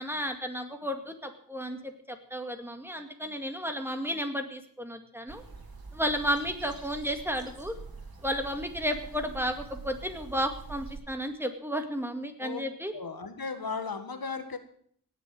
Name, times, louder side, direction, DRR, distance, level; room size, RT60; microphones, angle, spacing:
voice 1, 0.0-5.4 5.9-7.7 8.2-12.9, equal, 5° right, 5 dB, 2.1 m, -33 dB
sound 1, 5.3-11.0, right 4 dB, 80° right, 2.8 m, -45 dB
voice 2, 12.9-14.6, left 5 dB, 80° left, 8 dB, 1.6 m, -36 dB
18.0 x 6.9 x 7.7 m, 0.62 s
wide cardioid pair, 60°, 36 cm